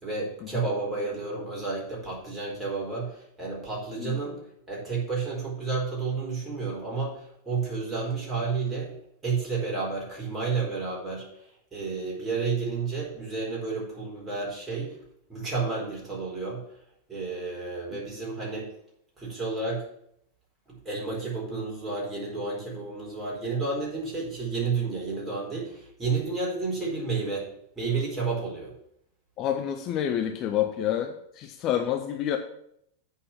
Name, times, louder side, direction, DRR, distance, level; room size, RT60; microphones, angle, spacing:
voice 1, 0.0-4.4 4.7-8.9 9.2-11.3 11.7-15.0 15.3-16.6 17.1-18.7 19.2-19.8 20.8-27.4 27.8-28.7, right 4 dB, 15° right, -4 dB, 4.3 m, -31 dB
voice 2, 29.4-32.4, left 10 dB, 35° left, 5 dB, 0.7 m, -28 dB
8.5 x 4.8 x 7.3 m, 0.72 s
figure-of-eight pair, 90°, 0 cm